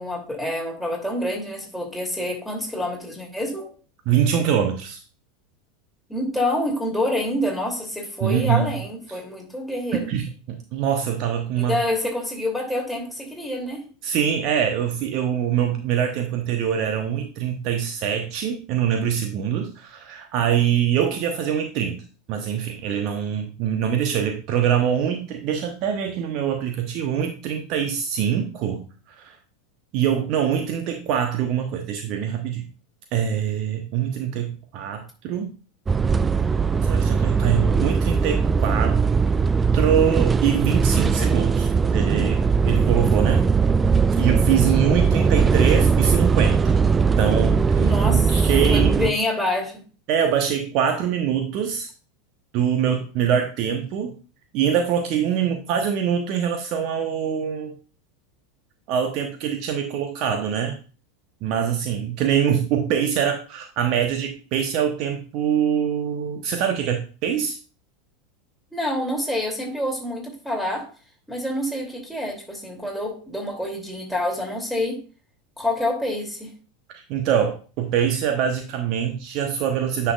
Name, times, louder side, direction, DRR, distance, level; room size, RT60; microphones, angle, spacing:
voice 1, 0.0-3.7 6.1-10.1 11.5-13.8 47.8-49.8 68.7-70.9 71.3-75.0 75.6-76.5, left 1 dB, ahead, 2.9 m, -27 dB
voice 2, 4.1-5.0 8.2-8.7 9.1-9.2 9.9-11.8 14.0-28.8 29.2-29.4 29.9-32.7 33.1-35.5 36.8-39.0 39.7-43.4 44.2-46.6 47.2-49.1 50.1-51.9 52.5-54.1 54.5-57.8 58.9-60.8 61.4-67.6 77.1-80.1, right 8 dB, 50° right, 1.0 m, -24 dB
sound 1, 35.9-49.1, right 5 dB, 20° right, 0.4 m, -19 dB
9.6 x 5.8 x 2.4 m
figure-of-eight pair, 85°, 0 cm